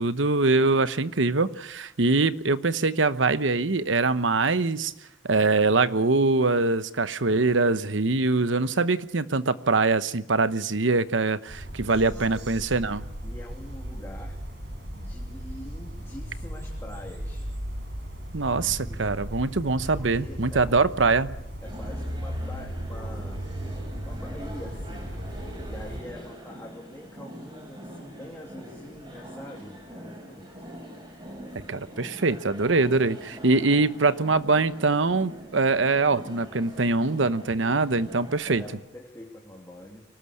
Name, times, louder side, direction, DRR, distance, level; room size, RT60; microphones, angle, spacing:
voice 1, 0.0-4.9 5.2-13.0 18.3-21.4 31.7-38.6, right 3 dB, 80° right, 14 dB, 1.0 m, -23 dB
sound 1, 11.5-26.0, equal, 60° right, 4.8 m, -36 dB
voice 2, 12.0-12.5 12.9-13.0 13.2-14.4 14.9-17.5 18.6-19.3 19.9-20.9 21.6-23.5 23.7-25.1 25.7-30.7 33.6-33.8 38.2-40.0, left 1 dB, 15° left, -1 dB, 3.1 m, -45 dB
sound 2, 21.6-38.7, equal, 25° right, 6.5 m, -44 dB
24.0 x 19.0 x 8.5 m, 0.83 s
head